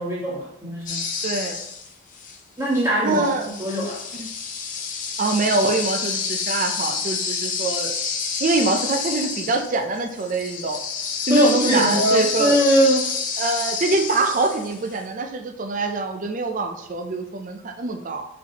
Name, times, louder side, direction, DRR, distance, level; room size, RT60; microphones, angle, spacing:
voice 1, 0.0-1.0 2.6-4.0 11.3-13.1, equal, 15° right, -6 dB, 1.4 m, -21 dB
sound 1, 0.9-2.4 2.7-15.0, left 5 dB, 40° left, 0.6 m, -29 dB
voice 2, 1.2-1.6 3.0-3.5 4.2-4.3 5.2-7.9 8.4-10.8 11.3-12.6 13.4-18.3, right 3 dB, 40° right, 5 dB, 0.5 m, -24 dB
4.5 x 4.0 x 2.9 m, 0.80 s
head